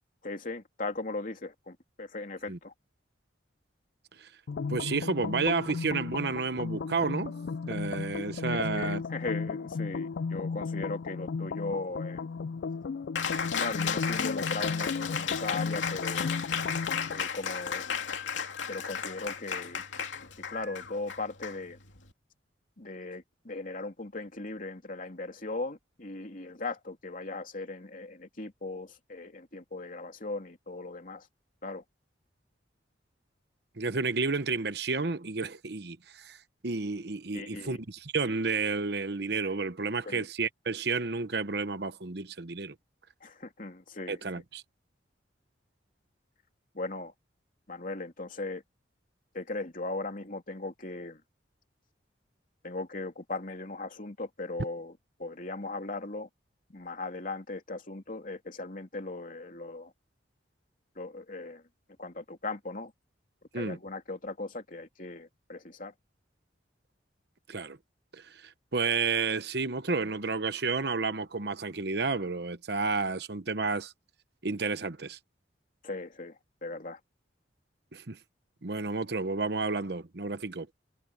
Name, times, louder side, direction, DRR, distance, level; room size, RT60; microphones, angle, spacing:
voice 1, 0.2-2.7 8.4-12.3 13.4-16.4 17.1-17.8 18.7-19.8 20.5-21.8 22.8-31.3 31.6-31.8 37.3-37.8 40.0-40.3 43.2-44.2 46.7-47.1 47.7-48.6 49.3-51.2 52.6-56.3 56.7-59.9 60.9-61.6 62.0-62.9 63.5-65.9 75.8-77.0, left 2 dB, 45° left, 3.0 m, -38 dB
sound 1, 4.5-17.2, left 5 dB, 65° left, 0.4 m, -35 dB
voice 2, 4.7-7.4 7.7-9.0 33.8-36.4 36.6-42.7 44.1-44.6 63.5-63.8 67.5-67.8 68.1-73.9 74.4-75.2 77.9-78.2 78.6-80.7, right 4 dB, 60° right, 1.0 m, -31 dB
Cheering, 13.2-22.1, left 6 dB, 85° left, 2.8 m, -34 dB
head